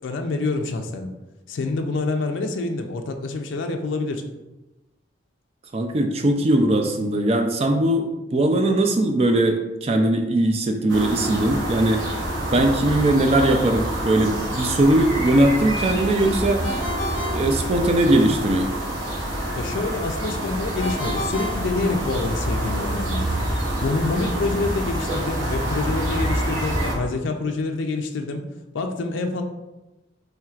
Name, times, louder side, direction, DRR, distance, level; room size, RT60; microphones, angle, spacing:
voice 1, 0.0-1.1 1.5-4.2 19.6-23.2 23.8-28.4 28.7-29.4, left 3 dB, 80° left, 4 dB, 0.4 m, -27 dB
voice 2, 5.7-12.0 12.5-16.6 17.2-18.7, right 1 dB, 30° right, 4 dB, 0.4 m, -20 dB
sound 1, 10.9-26.9, right 1 dB, 90° right, 1.2 m, -27 dB
Ringtone, 16.6-18.3 20.8-22.5, left 1 dB, 35° left, 1.0 m, -32 dB
4.5 x 3.2 x 2.4 m, 1.0 s
head